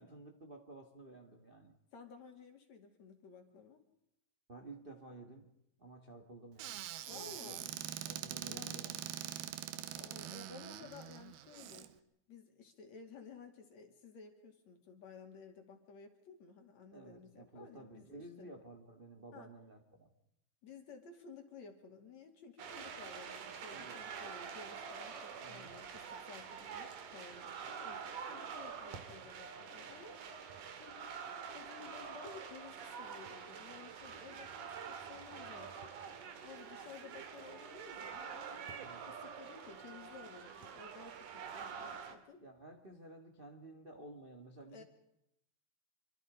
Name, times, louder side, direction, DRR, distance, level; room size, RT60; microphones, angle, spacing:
voice 1, 0.0-1.7 4.5-5.5 5.8-6.8 7.1-7.5 8.1-9.0 16.9-20.1 23.7-24.0 25.4-25.7 38.7-39.1 42.4-44.8, right 2 dB, 25° right, 5 dB, 1.1 m, -53 dB
voice 2, 1.9-3.8 7.1-7.7 8.5-8.8 9.7-11.9 12.3-18.5 19.3-19.5 20.6-31.1 31.5-35.9 36.2-42.4 44.7-44.8, left 5 dB, 50° left, 5 dB, 3.5 m, -55 dB
Squeak / Cupboard open or close, 6.6-11.9, right 12 dB, 85° right, 3.0 m, -44 dB
sound 1, 22.6-42.2, right 6 dB, 60° right, 3.3 m, -47 dB
26.5 x 25.0 x 5.2 m, 0.81 s
omnidirectional pair, 4.3 m